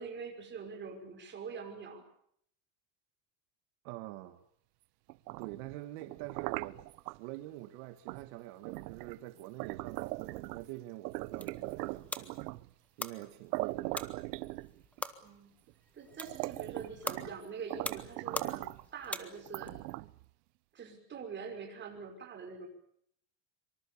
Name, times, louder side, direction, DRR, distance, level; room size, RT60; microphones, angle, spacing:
voice 1, 0.0-2.1 15.2-15.5 15.9-18.7 18.9-19.7 20.7-22.7, right 5 dB, 25° right, 3 dB, 5.9 m, -44 dB
voice 2, 3.8-4.4 5.4-6.8 7.1-12.5 13.0-14.0, right 16 dB, 60° right, 8 dB, 1.8 m, -45 dB
sound 1, 5.1-7.2 8.1-8.3 8.6-10.7 11.0-12.7 13.2-13.3 13.5-15.0 15.7-15.8 16.1-17.4 17.7-18.8 19.4-20.2, right 20 dB, 85° right, 1.0 m, -40 dB
sound 2, 11.1-19.7, left 1 dB, 5° left, 1.0 m, -44 dB
25.0 x 24.5 x 7.2 m, 0.69 s
supercardioid pair, 160°, 46 cm